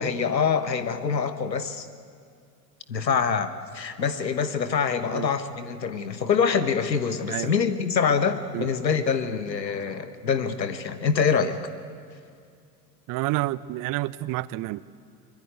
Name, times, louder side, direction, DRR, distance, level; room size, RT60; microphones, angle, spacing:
voice 1, 0.0-1.9 2.9-11.6, left 6 dB, 85° left, 11 dB, 1.4 m, -25 dB
voice 2, 13.1-14.8, right 18 dB, 40° right, 19 dB, 0.8 m, -29 dB
23.5 x 22.0 x 9.4 m, 2.3 s
figure-of-eight pair, 75°, 49 cm